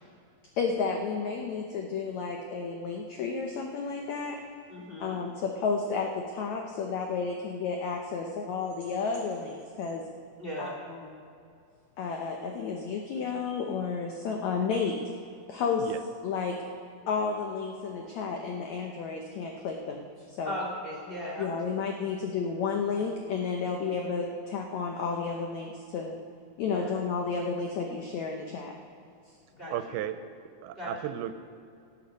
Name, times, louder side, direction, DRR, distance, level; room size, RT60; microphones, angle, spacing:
voice 1, 0.6-4.4 5.0-10.0 10.6-11.0 12.0-15.0 15.5-15.9 16.2-16.6 17.1-20.1 20.4-20.5 21.4-26.2 26.6-28.7, left 5 dB, 85° left, 2 dB, 1.6 m, -32 dB
voice 2, 4.7-5.2 10.4-10.7 20.4-21.5 26.7-26.9 29.6-29.7 30.7-30.9, left 1 dB, 20° left, -4 dB, 1.6 m, -37 dB
voice 3, 29.7-30.2 30.5-31.4, right 12 dB, 85° right, 11 dB, 2.4 m, -35 dB
17.5 x 7.3 x 5.2 m, 2.4 s
omnidirectional pair, 4.4 m